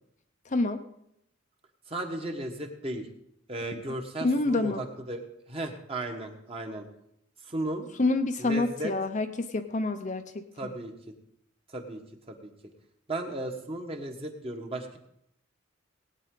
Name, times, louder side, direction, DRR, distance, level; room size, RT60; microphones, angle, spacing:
voice 1, 0.5-0.8 4.2-4.9 8.0-10.7, left 2 dB, 40° left, 7 dB, 0.7 m, -27 dB
voice 2, 1.9-3.1 3.5-5.2 5.5-6.9 7.4-7.9 8.4-8.9 10.6-11.1 11.7-12.0 12.3-12.5 13.1-15.0, right 1 dB, 30° right, 3 dB, 1.4 m, -35 dB
18.5 x 9.3 x 3.8 m, 0.77 s
head